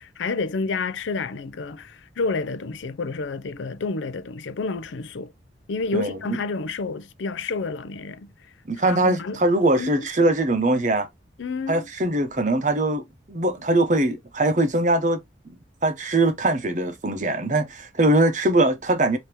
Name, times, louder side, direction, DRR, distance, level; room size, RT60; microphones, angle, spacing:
voice 1, 0.0-5.3 5.7-8.3 8.8-9.4 9.8-10.1 11.4-11.9, left 4 dB, 80° left, 0.5 m, -29 dB
voice 2, 8.7-11.1 11.7-13.0 13.3-15.6 15.8-19.2, right 2 dB, 40° right, 0.8 m, -22 dB
5.0 x 2.8 x 2.8 m
head